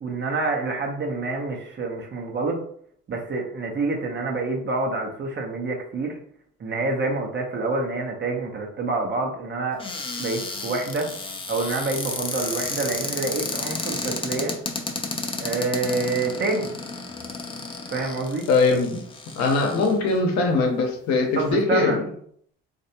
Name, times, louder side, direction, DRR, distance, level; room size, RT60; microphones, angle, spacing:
voice 1, 0.0-2.6 3.1-6.2 6.6-9.8 10.2-11.1 11.5-14.5 15.4-16.7 17.9-18.5 21.3-22.0, right 3 dB, 35° right, 1 dB, 0.9 m, -27 dB
Cupboard open or close, 9.8-20.2 20.8-20.9 21.2-21.5, left 3 dB, 20° left, 0.6 m, -32 dB
voice 2, 18.5-19.0 19.4-22.0, left 3 dB, 65° left, 2 dB, 0.9 m, -21 dB
3.2 x 2.6 x 2.8 m, 0.63 s
hypercardioid pair, 65°, 30 cm